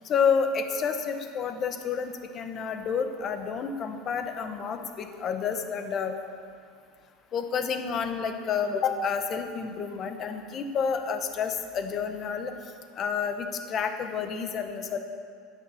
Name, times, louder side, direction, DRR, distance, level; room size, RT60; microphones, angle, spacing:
voice 1, 0.0-6.2 7.3-12.5 13.0-15.0, left 6 dB, 30° left, 7 dB, 1.0 m, -29 dB
11.0 x 9.1 x 7.1 m, 2.2 s
cardioid pair, 150°, 0 cm